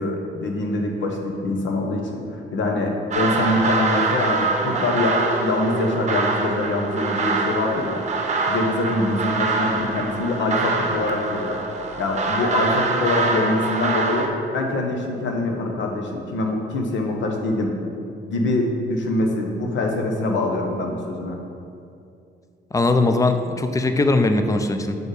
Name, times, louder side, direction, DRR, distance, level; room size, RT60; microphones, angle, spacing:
voice 1, 0.0-2.3 2.5-8.0 8.5-11.6 12.0-17.7 18.2-21.4, left 2 dB, 70° left, 2 dB, 1.0 m, -24 dB
sound 1, 3.1-14.3, right 3 dB, 35° right, 0.8 m, -24 dB
voice 2, 22.7-25.0, left 2 dB, 15° left, 7 dB, 0.5 m, -20 dB
6.9 x 4.2 x 4.9 m, 2.5 s
cardioid pair, 90°, 20 cm